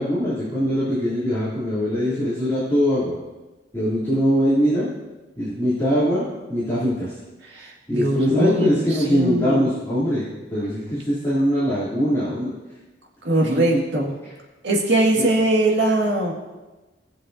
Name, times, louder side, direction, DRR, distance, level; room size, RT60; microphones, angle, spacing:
voice 1, 0.0-3.1 3.7-4.9 5.4-7.2 7.9-12.5 13.4-13.6 14.2-14.3 15.1-15.2, equal, 15° left, -13 dB, 3.1 m, -22 dB
voice 2, 7.5-9.7 13.2-14.1 14.6-16.3, right 1 dB, 70° right, -1 dB, 2.1 m, -21 dB
18.5 x 7.2 x 2.7 m, 1.1 s
head